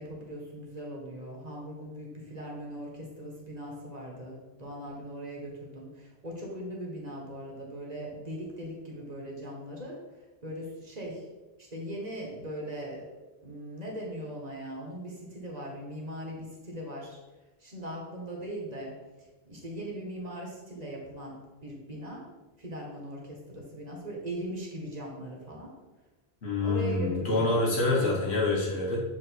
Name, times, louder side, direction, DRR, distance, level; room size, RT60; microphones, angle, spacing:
voice 1, 0.0-10.0 10.4-11.2 11.6-13.1 13.4-17.2 17.6-18.9 19.2-22.2 22.6-25.7 26.6-27.6 27.9-28.2, equal, 40° right, -2 dB, 1.4 m, -39 dB
voice 2, 26.4-29.0, left 2 dB, 70° left, -4 dB, 1.8 m, -26 dB
7.5 x 3.1 x 4.6 m, 1.2 s
omnidirectional pair, 1.1 m